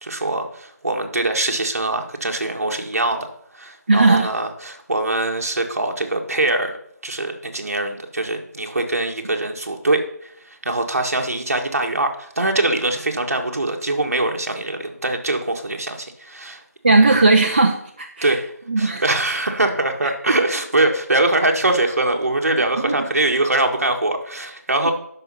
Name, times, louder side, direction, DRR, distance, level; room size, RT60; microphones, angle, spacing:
voice 1, 0.0-3.3 3.5-6.8 7.0-16.6 18.2-24.9, right 2 dB, 55° right, 3 dB, 1.8 m, -23 dB
voice 2, 3.9-4.3 16.8-18.4 18.7-19.0 20.0-20.4 22.8-23.1 24.8-24.9, right 3 dB, 35° right, 3 dB, 0.7 m, -17 dB
12.0 x 5.3 x 5.7 m, 0.69 s
figure-of-eight pair, 170°, 9 cm